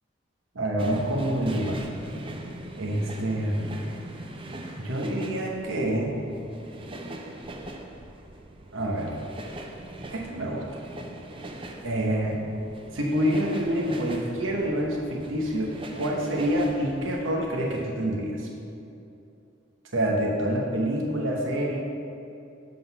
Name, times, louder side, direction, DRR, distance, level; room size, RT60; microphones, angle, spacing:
voice 1, 0.5-1.8 2.8-3.6 4.8-6.1 8.7-9.1 10.1-10.8 11.8-12.4 12.9-18.5 19.9-21.8, right 1 dB, 80° right, -2 dB, 0.9 m, -27 dB
sound 1, 0.8-17.9, right 1 dB, 25° right, 0.5 m, -41 dB
7.7 x 3.8 x 5.6 m, 2.7 s
head